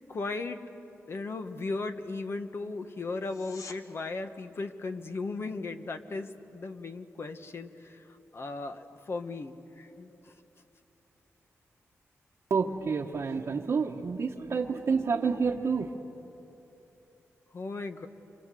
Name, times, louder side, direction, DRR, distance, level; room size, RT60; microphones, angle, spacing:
voice 1, 0.1-0.6 1.1-8.0 8.3-10.3 17.5-18.1, left 3 dB, 50° left, 7 dB, 1.4 m, -36 dB
sound 1, 3.2-3.8 15.2-15.3, left 5 dB, 90° left, 1.3 m, -46 dB
voice 2, 12.5-15.9, right 5 dB, 60° right, -2 dB, 1.2 m, -29 dB
29.5 x 25.0 x 7.7 m, 3.0 s
wide cardioid pair, 100°, 5 cm